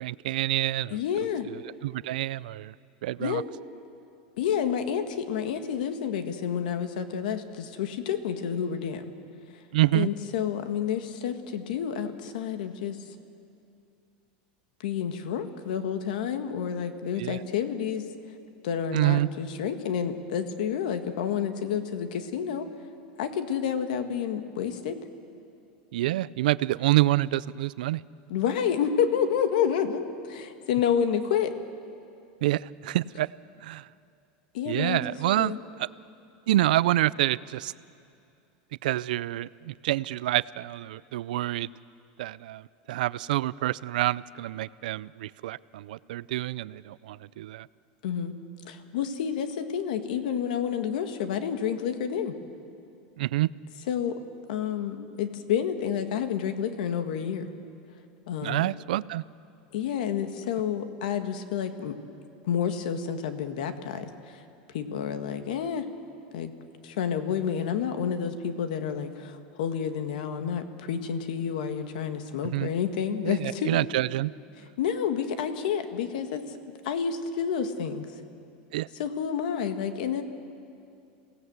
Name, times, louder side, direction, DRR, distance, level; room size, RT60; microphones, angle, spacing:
voice 1, 0.0-1.0 1.4-2.7 3.0-3.4 9.7-10.1 17.2-17.4 18.9-19.3 25.9-28.0 32.4-33.3 33.6-33.9 34.7-35.5 35.8-35.9 36.5-37.7 38.8-41.7 42.2-47.7 53.2-53.5 58.4-59.2 72.4-72.7 73.2-74.3 78.7-78.9, right 15 dB, 80° right, 19 dB, 0.5 m, -27 dB
voice 2, 0.9-1.5 3.2-3.4 4.4-9.1 9.9-13.0 14.8-18.1 18.6-22.7 23.2-25.0 28.3-31.5 34.5-35.0 35.4-35.6 48.0-48.3 48.7-52.3 53.9-54.2 54.5-57.5 58.3-58.7 59.7-62.0 62.4-64.4 64.7-65.8 66.3-66.5 66.8-73.7 74.8-76.6 76.8-78.1 79.0-80.2, left 8 dB, 75° left, 8 dB, 1.8 m, -29 dB
28.0 x 17.5 x 8.1 m, 2.5 s
supercardioid pair, 175°, 5 cm